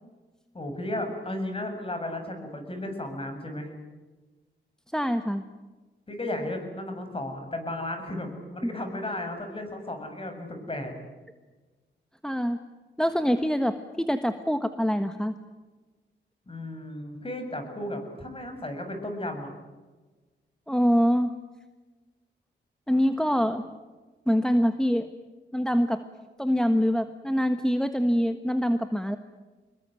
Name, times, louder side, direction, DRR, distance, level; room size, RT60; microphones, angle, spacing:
voice 1, 0.5-3.7 6.1-10.9 16.5-19.5, left 1 dB, 30° left, 6 dB, 7.2 m, -34 dB
voice 2, 4.9-5.4 8.6-8.7 12.2-12.6 13.0-15.3 20.7-21.3 22.9-23.7 24.3-25.1 25.5-26.0 26.4-29.2, equal, 5° left, 8 dB, 1.4 m, -24 dB
26.0 x 21.5 x 9.2 m, 1.2 s
cardioid pair, 90°, 20 cm